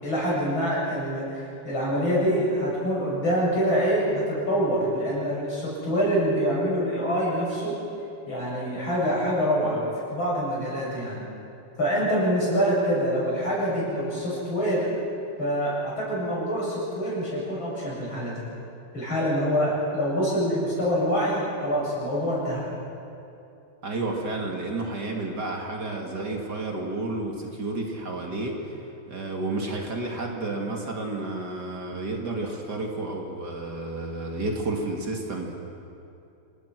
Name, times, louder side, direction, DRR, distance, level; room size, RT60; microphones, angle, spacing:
voice 1, 0.0-7.8 8.3-11.2 11.8-15.0 15.4-18.4 18.9-22.6, equal, 70° left, -6 dB, 8.7 m, -25 dB
voice 2, 23.8-28.6 29.1-35.6, right 2 dB, 50° right, 1 dB, 3.0 m, -31 dB
27.0 x 20.0 x 6.3 m, 2.8 s
omnidirectional pair, 2.3 m